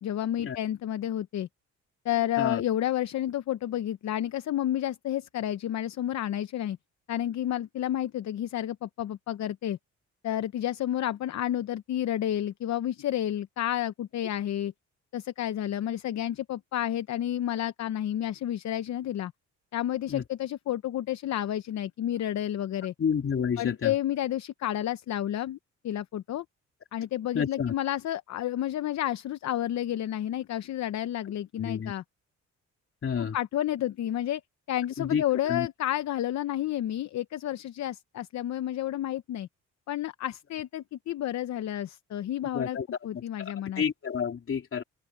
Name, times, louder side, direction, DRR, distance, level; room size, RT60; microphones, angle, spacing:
voice 1, 0.0-1.5 2.0-6.8 7.1-9.8 10.2-14.7 15.1-19.3 19.7-22.9 23.6-25.6 25.8-26.4 26.9-32.0 33.2-34.4 34.7-39.5 39.9-42.8 43.0-43.8, left 12 dB, 65° left, 0.9 m, -30 dB
voice 2, 23.0-23.9 27.3-27.7 31.6-31.9 33.0-33.4 35.0-35.7 42.5-42.9 43.1-43.2 43.8-44.8, left 7 dB, 45° left, 3.5 m, -29 dB
cardioid pair, 90°, 30 cm